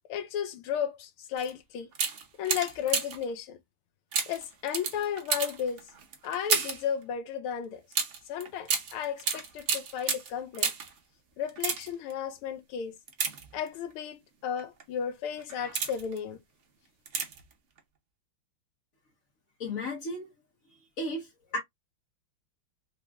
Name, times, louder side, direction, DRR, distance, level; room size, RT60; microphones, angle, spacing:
voice 1, 0.1-1.9 2.4-3.6 4.3-5.8 6.2-7.8 8.3-10.7 11.4-12.9 13.5-16.4, left 8 dB, 90° left, 1.6 m, -34 dB
sound 1, 1.4-1.5 1.9-3.3 4.1-6.9 7.9-11.0 11.5-12.1 13.1-13.9 14.6-14.8 15.4-16.2 17.1-17.5 17.8-17.9, right 6 dB, 65° right, 0.7 m, -32 dB
voice 2, 19.6-20.3 21.0-21.6, left 1 dB, 45° left, 1.4 m, -34 dB
3.9 x 3.1 x 2.3 m
omnidirectional pair, 2.3 m